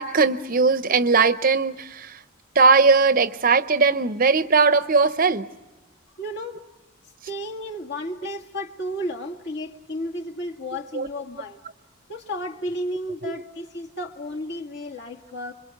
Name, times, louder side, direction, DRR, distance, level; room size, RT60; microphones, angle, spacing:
voice 1, 0.0-2.2 2.5-5.4 10.9-11.1 13.2-13.3, right 4 dB, 40° right, 12 dB, 0.7 m, -19 dB
voice 2, 6.2-6.6 7.3-11.6 12.1-15.5, equal, 50° left, 1 dB, 2.0 m, -33 dB
26.5 x 23.5 x 6.6 m, 1.1 s
head